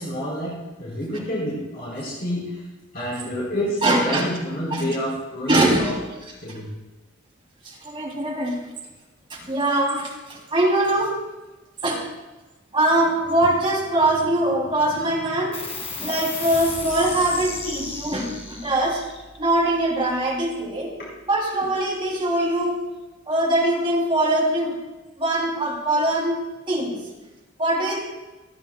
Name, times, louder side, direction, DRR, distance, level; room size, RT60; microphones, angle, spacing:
voice 1, 0.0-2.6 2.9-5.9 6.4-6.7, equal, 55° left, -7 dB, 4.2 m, -28 dB
voice 2, 3.8-4.2 4.7-4.8 5.5-5.9 6.5-6.6 7.6-8.6 9.3-11.2 11.8-12.0 12.7-15.6 16.0-19.0 19.4-20.9 21.3-22.8 23.3-24.7 25.2-26.4 26.7-27.0 27.6-28.0, right 1 dB, 25° right, -3 dB, 3.1 m, -22 dB
sound 1, 15.5-22.4, left 3 dB, 30° left, 2.0 m, -36 dB
26.5 x 9.3 x 2.3 m, 1.1 s
head